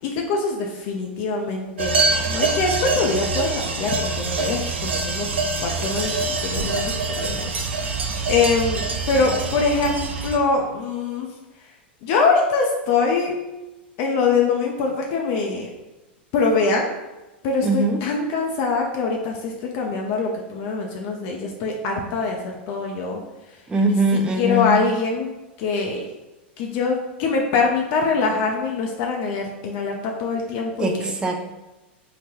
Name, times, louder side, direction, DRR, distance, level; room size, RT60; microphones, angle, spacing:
voice 1, 0.0-5.3 5.6-6.1 6.4-11.3 12.0-13.3 14.0-15.7 16.3-16.9 17.4-22.4 22.7-23.2 24.4-25.3 25.6-26.0 26.6-31.1, left 4 dB, 55° left, 0 dB, 0.5 m, -23 dB
sound 1, 1.8-10.4, right 3 dB, 90° right, 0.4 m, -25 dB
voice 2, 17.6-18.0 23.7-24.8 30.8-31.4, right 1 dB, 15° right, 3 dB, 0.4 m, -21 dB
3.8 x 2.2 x 2.9 m, 1.1 s
hypercardioid pair, 100°, 6 cm